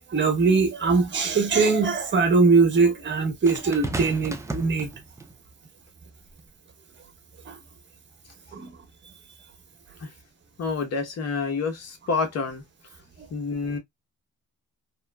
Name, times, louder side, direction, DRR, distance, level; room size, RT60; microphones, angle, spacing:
voice 1, 0.1-4.9 7.5-7.6 8.5-8.7, right 4 dB, 40° right, 1.0 m, -21 dB
sound 1, 3.5-5.4 6.3-6.5, right 2 dB, 10° right, 0.4 m, -33 dB
voice 2, 10.6-12.6 13.3-13.8, left 4 dB, 55° left, 0.9 m, -28 dB
2.9 x 2.2 x 2.2 m
cardioid pair, 90°, 30 cm